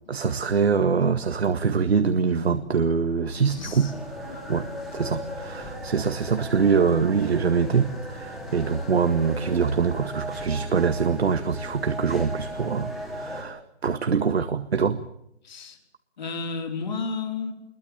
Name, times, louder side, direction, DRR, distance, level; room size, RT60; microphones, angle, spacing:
voice 1, 0.1-15.0, right 6 dB, 70° right, 9 dB, 1.8 m, -24 dB
sound 1, 3.3-13.4, equal, ahead, 2.7 m, -37 dB
voice 2, 3.5-3.9 4.3-4.4 6.6-6.8 15.4-15.8 16.2-17.5, left 4 dB, 40° left, 3 dB, 4.7 m, -32 dB
23.5 x 22.0 x 7.4 m, 0.76 s
hypercardioid pair, 165°, 33 cm